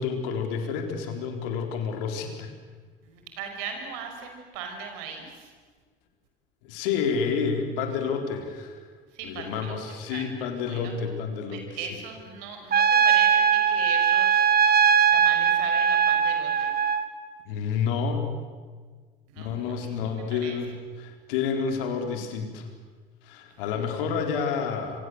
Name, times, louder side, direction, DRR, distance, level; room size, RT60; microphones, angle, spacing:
voice 1, 0.0-2.5 6.6-8.9 9.2-11.6 17.5-18.2 19.4-22.7 23.2-25.0, left 6 dB, 65° left, 5 dB, 4.2 m, -29 dB
voice 2, 3.0-5.5 9.1-10.2 10.7-10.9 11.5-14.5 15.1-16.7 19.3-20.6 23.6-23.8, right 6 dB, 65° right, 4 dB, 5.9 m, -39 dB
Trumpet, 12.7-17.1, right 7 dB, 35° right, 1.9 m, -20 dB
27.0 x 25.0 x 8.0 m, 1.5 s
figure-of-eight pair, 65°, 29 cm